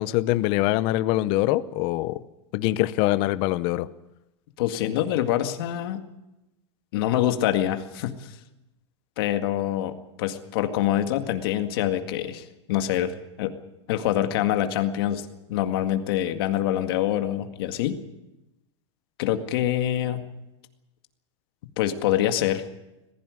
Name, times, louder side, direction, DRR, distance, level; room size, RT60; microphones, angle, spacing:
voice 1, 0.0-2.2 2.5-3.9, left 16 dB, 35° left, 15 dB, 0.7 m, -23 dB
voice 2, 4.6-6.0 6.9-8.4 9.2-13.5 13.9-18.0 19.2-20.2 21.8-22.6, left 12 dB, 55° left, 7 dB, 2.0 m, -25 dB
21.0 x 15.5 x 9.5 m, 0.97 s
supercardioid pair, 170°, 15 cm